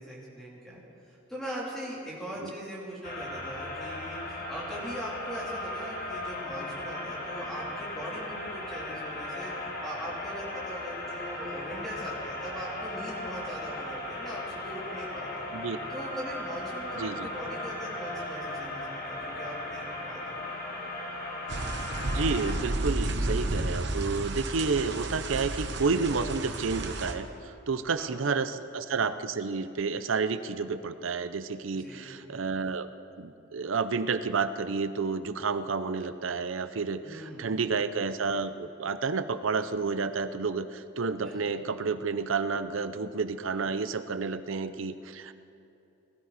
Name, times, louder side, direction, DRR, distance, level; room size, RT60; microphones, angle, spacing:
voice 1, 0.0-9.5 9.8-15.5 15.9-20.4 27.9-28.3 31.7-32.3 37.0-37.6 41.2-41.4, equal, ahead, -7 dB, 3.4 m, -41 dB
sound 1, 3.0-22.5, left 1 dB, 45° left, 1.7 m, -37 dB
voice 2, 17.0-17.3 22.0-27.3 27.7-32.9 33.2-45.3, right 4 dB, 75° right, 11 dB, 0.6 m, -30 dB
sound 2, 21.5-27.1, right 2 dB, 55° right, 1.0 m, -32 dB
20.0 x 13.0 x 4.2 m, 2.9 s
head